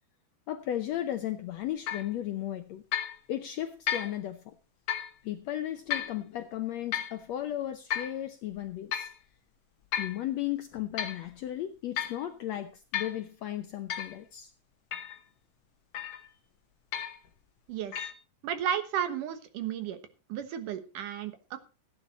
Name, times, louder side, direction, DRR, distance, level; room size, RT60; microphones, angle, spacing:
voice 1, 0.5-2.8 3.3-4.5 5.2-9.1 10.0-14.5, left 12 dB, 75° left, 9 dB, 1.6 m, -35 dB
sound 1, 1.9-2.1 2.9-3.2 3.9-4.2 4.9-5.1 5.9-6.1 6.9-7.2 7.9-8.2 8.9-9.2 9.9-10.2 10.7-11.2 12.0-12.2 12.9-13.2 13.9-14.1 14.9-15.2 15.9-16.3 16.9-17.3 17.9-18.1, left 10 dB, 55° left, 1.9 m, -33 dB
voice 2, 17.7-18.1 18.4-20.0 20.3-21.6, right 9 dB, 75° right, 9 dB, 2.8 m, -33 dB
16.0 x 9.7 x 4.2 m, 0.32 s
omnidirectional pair, 3.9 m